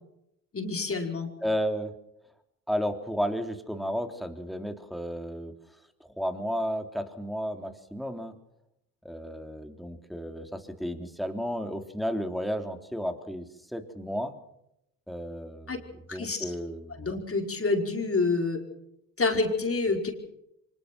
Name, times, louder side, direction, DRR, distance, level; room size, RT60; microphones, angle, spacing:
voice 1, 0.5-1.3 15.7-15.8 16.1-16.5 17.0-18.6 19.2-20.1, left 3 dB, 35° left, 3 dB, 4.8 m, -27 dB
voice 2, 1.4-1.9 2.7-5.5 6.0-8.3 9.0-13.4 13.7-14.3 15.1-15.8 16.1-17.1, equal, ahead, 6 dB, 3.4 m, -33 dB
24.5 x 21.0 x 6.1 m, 0.80 s
supercardioid pair, 60°, 38 cm